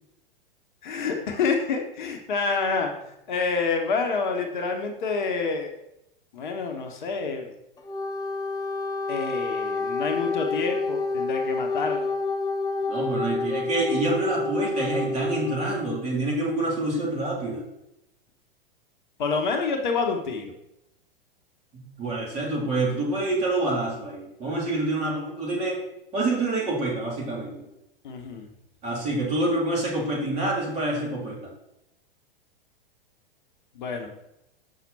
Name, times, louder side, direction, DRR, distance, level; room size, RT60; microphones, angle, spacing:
voice 1, 0.8-5.7 6.3-7.5 9.1-12.1 19.2-20.5 28.0-28.4 33.7-34.1, left 4 dB, 55° left, 4 dB, 1.1 m, -28 dB
Wind instrument woodwind instrument, 7.8-15.8, left 3 dB, 15° left, 0.7 m, -29 dB
voice 2, 12.9-17.6 21.7-25.8 26.1-27.6 28.8-31.4, right 2 dB, 25° right, -3 dB, 3.0 m, -27 dB
6.6 x 5.9 x 4.1 m, 0.84 s
figure-of-eight pair, 100°, 29 cm